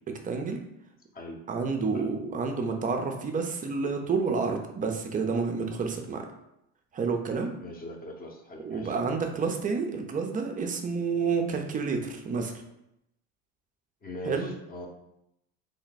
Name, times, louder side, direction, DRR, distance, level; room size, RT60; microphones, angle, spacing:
voice 1, 0.1-0.6 1.5-6.3 6.9-7.5 8.6-12.5 14.3-14.5, right 4 dB, 20° right, 4 dB, 0.4 m, -29 dB
voice 2, 7.6-9.0 14.0-14.9, left 1 dB, 20° left, 2 dB, 0.7 m, -40 dB
3.3 x 2.1 x 4.0 m, 0.82 s
hypercardioid pair, 95°, 42 cm